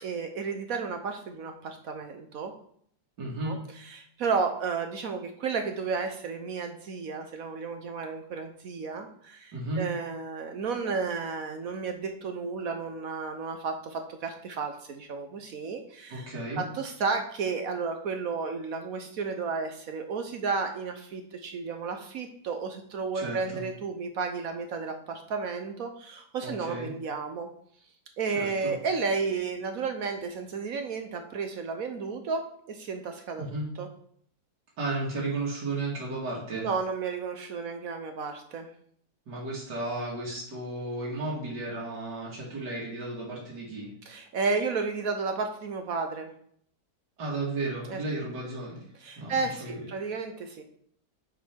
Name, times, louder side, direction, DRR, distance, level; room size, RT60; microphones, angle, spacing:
voice 1, 0.0-2.5 3.4-16.3 16.6-27.5 28.2-33.5 33.8-33.9 36.5-38.7 44.1-46.3 47.9-48.0 49.0-50.6, right 4 dB, 65° right, 5 dB, 1.1 m, -32 dB
voice 2, 3.2-3.6 9.5-9.9 16.1-16.6 23.1-23.6 26.4-26.9 28.3-28.7 33.4-33.7 34.8-36.7 39.3-43.9 47.2-48.8 49.2-49.8, right 2 dB, 85° right, -5 dB, 2.6 m, -34 dB
7.3 x 5.4 x 4.5 m, 0.64 s
omnidirectional pair, 1.8 m